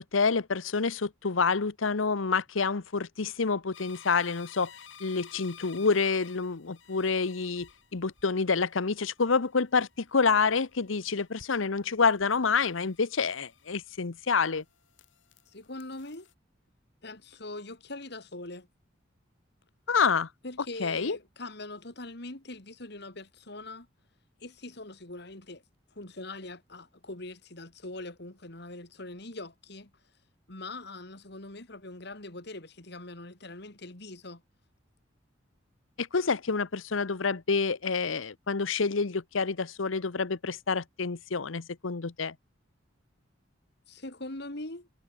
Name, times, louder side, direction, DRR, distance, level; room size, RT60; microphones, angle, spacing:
voice 1, 0.0-4.7 5.0-14.6 19.9-20.3 20.8-21.2 36.0-42.3, left 5 dB, 90° left, 0.9 m, -28 dB
sound 1, 3.7-14.2 14.5-16.3, left 7 dB, 75° left, 4.0 m, -54 dB
voice 2, 15.5-16.3 17.0-18.7 20.4-23.9 24.4-25.6 25.9-29.9 30.5-34.4 43.9-44.9, left 2 dB, 60° left, 2.9 m, -42 dB
head